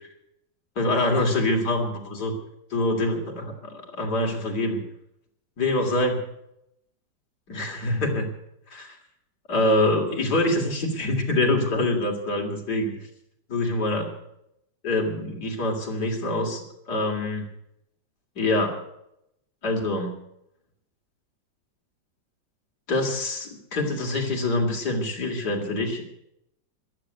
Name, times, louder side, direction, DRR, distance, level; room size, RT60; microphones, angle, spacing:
voice 1, 0.8-2.3 2.7-4.8 5.6-6.2 7.5-8.3 8.7-9.0 9.5-13.0 13.5-14.1 14.8-17.5 18.4-18.8 19.6-20.2 22.9-26.2, left 2 dB, 60° left, 1 dB, 3.6 m, -25 dB
14.5 x 12.0 x 8.1 m, 0.79 s
omnidirectional pair, 2.0 m